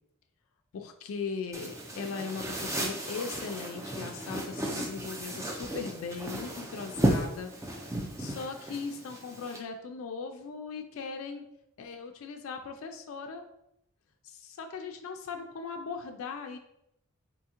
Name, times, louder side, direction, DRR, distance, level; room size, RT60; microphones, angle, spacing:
voice 1, 0.7-7.5 7.8-11.5 11.8-13.4 14.2-16.6, left 5 dB, 70° left, 5 dB, 0.3 m, -39 dB
sound 1, 1.5-9.6, right 1 dB, 15° right, 0.3 m, -34 dB
3.5 x 2.8 x 2.8 m, 0.82 s
head